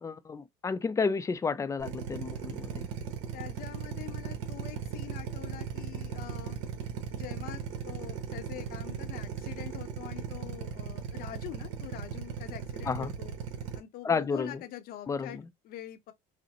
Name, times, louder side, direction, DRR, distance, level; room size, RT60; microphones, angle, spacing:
voice 1, 0.0-2.9 12.9-13.1 14.0-14.6 15.1-15.4, left 5 dB, 15° left, 0.5 m, -31 dB
Drill, 1.8-13.8, right 7 dB, 80° right, 1.0 m, -37 dB
voice 2, 3.3-6.6 7.1-13.3 13.7-16.1, left 12 dB, 55° left, 0.8 m, -44 dB
5.0 x 2.1 x 2.9 m
supercardioid pair, 110°, 18 cm